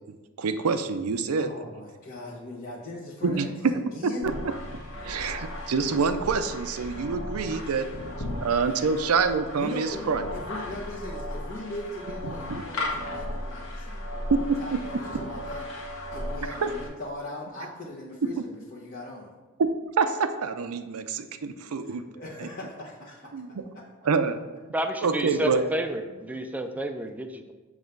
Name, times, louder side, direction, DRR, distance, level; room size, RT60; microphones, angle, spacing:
voice 1, 0.4-1.5 3.2-3.7 4.2-4.3 5.0-7.9 8.4-10.2 12.2-12.6 14.3-14.8 16.6-16.7 19.6-22.0 22.4-22.5 23.3-23.6 24.0-24.4 25.0-25.6, right 5 dB, 85° right, 10 dB, 0.5 m, -26 dB
voice 2, 1.4-4.3 8.1-8.3 8.6-8.9 9.6-14.1 14.6-15.6 16.1-19.3 21.8-23.3 25.4-25.6 26.1-26.2 26.6-26.7, left 2 dB, 45° left, -7 dB, 1.1 m, -39 dB
sound 1, 4.2-16.9, left 1 dB, 70° left, 1.4 m, -36 dB
voice 3, 24.7-27.5, right 1 dB, 5° right, 6 dB, 0.4 m, -30 dB
7.2 x 3.4 x 5.2 m, 1.2 s
head